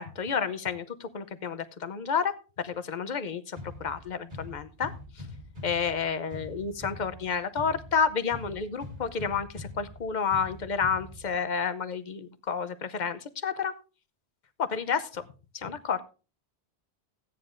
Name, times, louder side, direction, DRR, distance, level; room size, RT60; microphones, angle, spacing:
voice 1, 0.0-4.9 5.6-13.7 14.6-15.2 15.5-16.0, left 6 dB, 50° left, 11 dB, 0.8 m, -30 dB
sound 1, 3.6-11.6, left 2 dB, 50° right, 2.0 m, -44 dB
15.5 x 9.5 x 2.6 m, 0.34 s
omnidirectional pair, 1.1 m